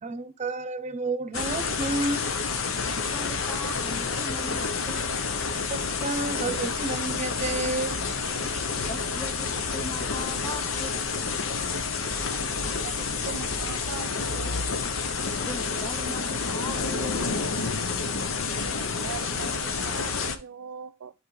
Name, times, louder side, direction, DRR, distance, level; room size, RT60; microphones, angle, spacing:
voice 1, 0.0-2.3 6.0-8.0 8.5-8.6, right 2 dB, 35° right, 0.7 m, -30 dB
sound 1, 1.3-20.4, left 4 dB, 65° left, 0.8 m, -29 dB
voice 2, 3.1-5.3 8.9-11.1 15.4-17.3 17.6-17.8, left 1 dB, 15° left, 0.7 m, -40 dB
voice 3, 12.8-14.6 18.6-21.1, right 7 dB, 85° right, 0.4 m, -41 dB
12.0 x 4.2 x 3.2 m
head